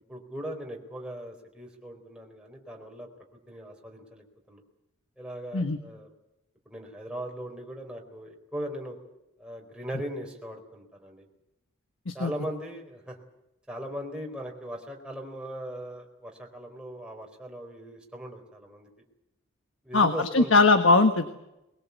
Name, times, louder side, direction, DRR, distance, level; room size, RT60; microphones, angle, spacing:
voice 1, 0.1-3.1 3.5-4.6 5.2-6.1 6.7-9.0 9.4-11.3 12.1-13.2 13.7-18.9 19.8-20.7, equal, 5° right, 0 dB, 4.2 m, -39 dB
voice 2, 19.9-21.3, left 3 dB, 70° left, 8 dB, 1.4 m, -20 dB
22.0 x 20.5 x 8.4 m, 0.92 s
head